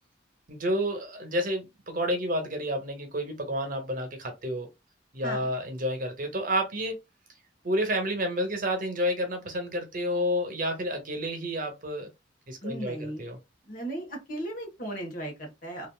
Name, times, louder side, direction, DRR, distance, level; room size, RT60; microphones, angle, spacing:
voice 1, 0.5-4.7 5.1-7.0 7.6-12.1 12.5-13.4, equal, 45° right, 0.8 m, -30 dB
voice 2, 12.6-13.3 13.7-15.9, right 1 dB, 45° left, 1.3 m, -36 dB
3.2 x 2.5 x 2.3 m
head